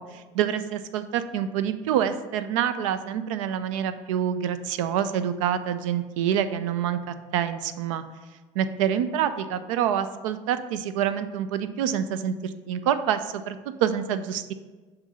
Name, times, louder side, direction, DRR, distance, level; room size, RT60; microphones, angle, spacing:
voice 1, 0.0-8.0 8.6-14.5, right 9 dB, 80° right, 12 dB, 0.4 m, -27 dB
7.0 x 2.6 x 5.4 m, 1.3 s
hypercardioid pair, 70°, 16 cm